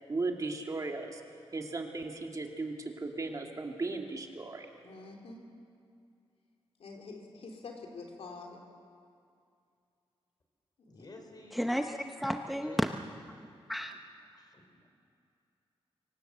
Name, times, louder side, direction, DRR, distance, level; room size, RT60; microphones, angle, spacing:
voice 1, 0.1-1.2 1.5-4.7, right 3 dB, 35° right, 2 dB, 2.1 m, -36 dB
voice 2, 4.8-5.4 6.8-8.6 10.8-11.1, left 3 dB, 80° left, 1 dB, 3.6 m, -46 dB
voice 3, 10.9-11.8 12.6-13.1 14.3-14.9, left 2 dB, 40° left, 4 dB, 4.0 m, -52 dB
voice 4, 11.5-12.9 13.7-14.0, equal, ahead, 5 dB, 0.8 m, -32 dB
25.0 x 19.0 x 8.0 m, 2.4 s
wide cardioid pair, 130°, 10 cm